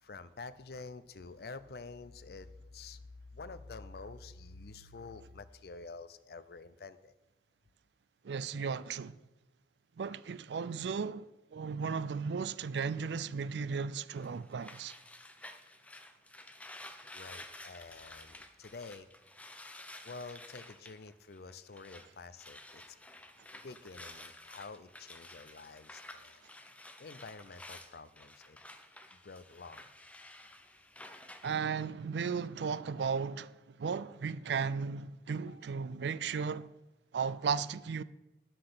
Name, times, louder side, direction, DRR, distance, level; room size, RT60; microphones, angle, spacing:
voice 1, 0.0-7.1 17.1-19.1 20.0-23.0 23.6-26.5 27.0-28.6 29.1-29.9 35.4-35.7, left 4 dB, 60° left, 0.5 m, -48 dB
voice 2, 8.2-9.2 10.0-11.2 11.5-14.9 31.4-36.7 37.1-38.0, right 5 dB, 75° right, 0.4 m, -35 dB
sound 1, 14.1-22.1 22.3-31.6, left 1 dB, 10° left, 0.6 m, -52 dB
9.7 x 5.9 x 6.7 m
head